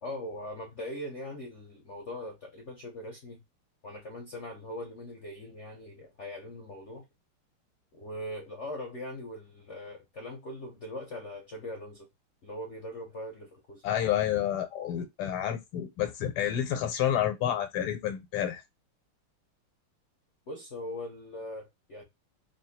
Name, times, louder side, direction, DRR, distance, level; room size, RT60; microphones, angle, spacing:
voice 1, 0.0-3.4 3.8-7.0 8.0-12.1 12.4-13.9 20.5-22.0, left 1 dB, 60° left, 0.7 m, -41 dB
voice 2, 13.8-18.6, left 10 dB, 80° left, 1.6 m, -29 dB
4.1 x 2.3 x 2.7 m
omnidirectional pair, 2.4 m